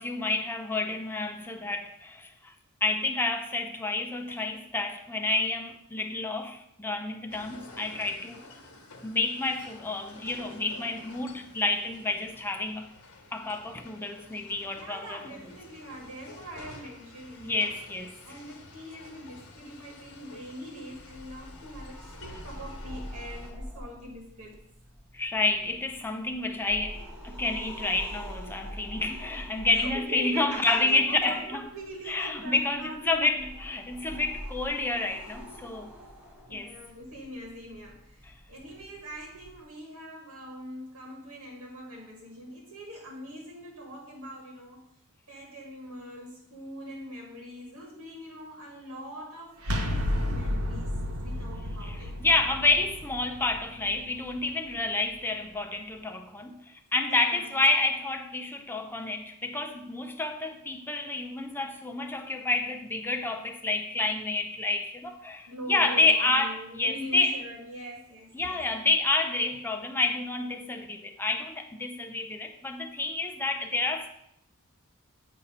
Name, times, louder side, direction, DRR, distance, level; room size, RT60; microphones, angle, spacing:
voice 1, 0.0-2.5 2.8-8.4 9.0-12.9 13.3-15.3 17.4-18.1 25.1-31.6 32.1-35.9 36.5-36.7 51.8-56.6 56.9-67.4 68.3-74.1, left 2 dB, 10° left, 0.5 m, -29 dB
sound 1, 7.3-23.5, left 2 dB, 75° left, 1.2 m, -50 dB
voice 2, 14.8-17.7 18.2-24.6 29.7-33.5 36.5-44.8 45.3-50.9 51.2-52.4 57.1-57.5 65.5-68.7, equal, 85° right, 1.5 m, -43 dB
sound 2, 20.9-39.6, equal, 5° right, 0.9 m, -45 dB
sound 3, 49.6-55.3, left 1 dB, 70° right, 0.8 m, -33 dB
8.3 x 2.8 x 5.3 m
head